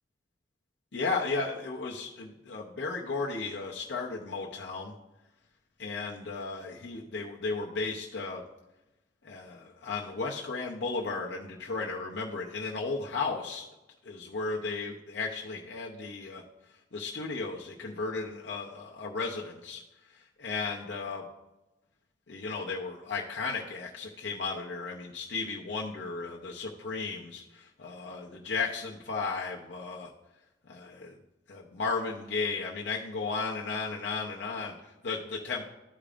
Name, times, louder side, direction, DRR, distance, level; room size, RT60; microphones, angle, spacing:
voice 1, 0.9-4.9 5.8-8.4 9.2-13.7 14.0-16.4 16.9-19.8 20.1-21.2 22.3-30.1 30.7-31.2 31.5-35.6, left 4 dB, 75° left, -2 dB, 0.7 m, -35 dB
12.0 x 5.0 x 2.5 m, 0.99 s
head